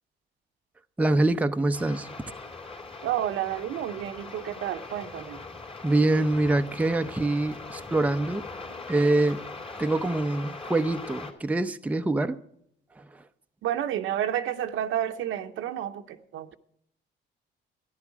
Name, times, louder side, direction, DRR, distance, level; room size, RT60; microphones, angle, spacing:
voice 1, 1.0-2.1 5.8-8.5 8.9-9.5 9.8-12.4 13.0-13.1, right 2 dB, 5° right, 0.6 m, -25 dB
sound 1, 1.7-11.3, left 3 dB, 25° left, 3.3 m, -41 dB
voice 2, 3.0-5.4 13.6-16.5, right 11 dB, 85° right, 0.9 m, -30 dB
12.0 x 11.0 x 6.0 m
cardioid pair, 90°, 20 cm